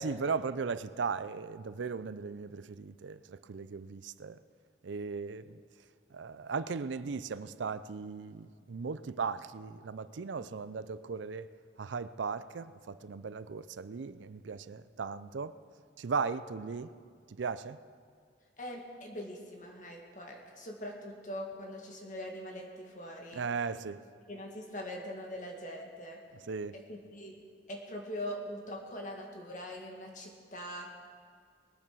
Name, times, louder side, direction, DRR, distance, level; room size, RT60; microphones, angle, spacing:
voice 1, 0.0-4.4 4.8-5.6 6.1-11.5 11.8-15.5 16.0-16.9 17.3-17.8 23.3-24.0 26.5-26.8, right 5 dB, 90° right, 0.5 m, -37 dB
voice 2, 18.6-23.5 24.3-26.2 26.7-27.3 27.7-30.9, left 1 dB, 45° left, 2.0 m, -42 dB
20.5 x 8.9 x 6.2 m
head